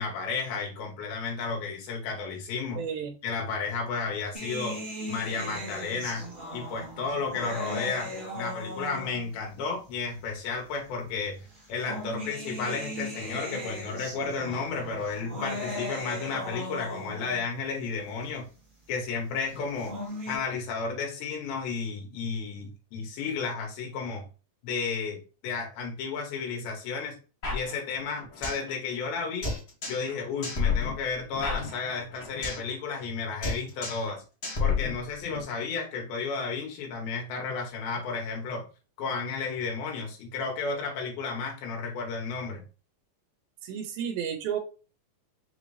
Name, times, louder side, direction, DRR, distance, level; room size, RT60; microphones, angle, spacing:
voice 1, 0.0-2.8 3.2-11.4 11.7-18.5 18.9-19.9 20.3-24.2 24.6-27.2 27.5-29.5 29.9-34.2 34.6-38.7 39.0-42.6, left 4 dB, 90° left, 1 dB, 2.8 m, -33 dB
voice 2, 2.8-3.1 43.6-44.6, right 8 dB, 85° right, 5 dB, 2.4 m, -32 dB
sound 1, 4.3-9.4 10.4-10.5 11.5-17.4 19.6-20.3, left 1 dB, 25° right, 0.8 m, -37 dB
sound 2, 27.4-28.7 29.0-29.1 29.4-30.1 30.4-32.7 33.0-33.2 33.4-34.1 34.4-35.4, left 5 dB, 60° left, 1.0 m, -31 dB
5.9 x 2.6 x 3.1 m, 0.34 s
omnidirectional pair, 4.2 m